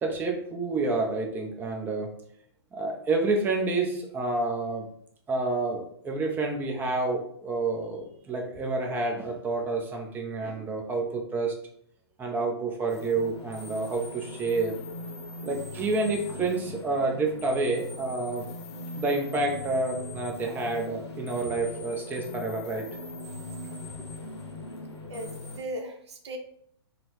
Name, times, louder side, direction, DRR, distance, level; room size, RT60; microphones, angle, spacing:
voice 1, 0.0-2.1 2.7-4.9 5.3-11.5 12.2-14.7 15.4-18.5 19.0-22.9 24.0-24.1, right 3 dB, 15° right, 1 dB, 0.5 m, -29 dB
sound 1, 12.9-25.6, left 2 dB, 75° left, 0.8 m, -40 dB
voice 2, 25.1-26.4, right 1 dB, 75° right, 5 dB, 0.6 m, -37 dB
3.8 x 2.1 x 3.0 m, 0.65 s
hypercardioid pair, 125°, 14 cm